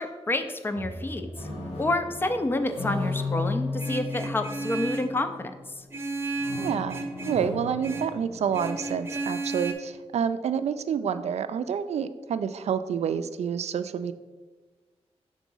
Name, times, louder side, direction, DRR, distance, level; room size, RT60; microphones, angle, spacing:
voice 1, 0.0-1.5 1.8-5.5 5.8-5.9, left 2 dB, 20° left, 8 dB, 0.4 m, -29 dB
sound 1, 0.7-5.9 6.3-9.5, left 3 dB, 70° left, 1.7 m, -35 dB
Vehicle horn car horn honking, 3.8-5.2 5.9-7.5 7.8-8.2 8.5-9.7, right 3 dB, 20° right, 0.7 m, -33 dB
voice 2, 6.6-14.1, right 7 dB, 75° right, 12 dB, 0.4 m, -28 dB
6.1 x 3.7 x 5.4 m, 1.3 s
wide cardioid pair, 150°, 11 cm